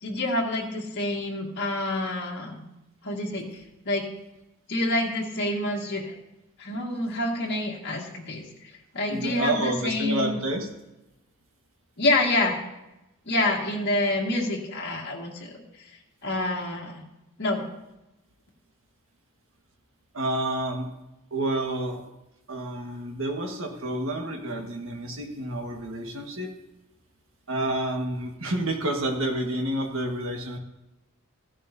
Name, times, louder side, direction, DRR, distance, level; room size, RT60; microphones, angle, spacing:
voice 1, 0.0-2.6 3.0-3.6 3.9-4.1 4.7-6.1 6.6-8.5 8.9-10.4 12.0-12.6 13.3-15.6 16.2-17.0 17.4-17.7, left 2 dB, 50° left, -2 dB, 1.9 m, -27 dB
voice 2, 9.1-10.7 20.1-20.9 21.3-22.0 22.5-26.5 27.5-30.6, right 1 dB, 65° right, 2 dB, 1.5 m, -29 dB
15.5 x 10.5 x 2.7 m, 0.95 s
head